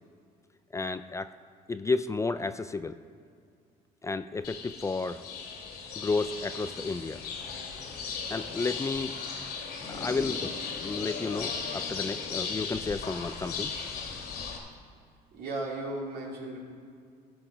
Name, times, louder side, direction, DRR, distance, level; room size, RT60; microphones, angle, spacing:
voice 1, 0.7-1.3 1.7-3.0 4.0-5.2 6.0-7.2 8.3-9.2 9.9-13.7, left 3 dB, 20° left, 11 dB, 0.3 m, -32 dB
sound 1, 4.4-14.6, left 5 dB, 75° left, 2.2 m, -37 dB
voice 2, 15.3-16.6, right 2 dB, 70° right, -2 dB, 2.9 m, -35 dB
16.5 x 6.0 x 5.1 m, 2.2 s
cardioid pair, 110°, 17 cm